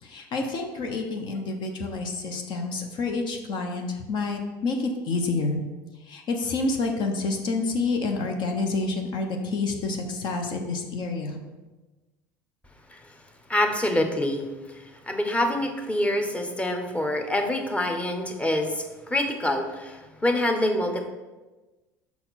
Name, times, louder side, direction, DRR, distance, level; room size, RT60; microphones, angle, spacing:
voice 1, 0.0-5.6 6.0-11.4, left 3 dB, 55° left, 3 dB, 0.9 m, -28 dB
voice 2, 13.5-14.4 15.1-21.0, left 1 dB, 15° left, 4 dB, 0.9 m, -26 dB
5.8 x 4.3 x 4.1 m, 1.2 s
hypercardioid pair, 80°, 9 cm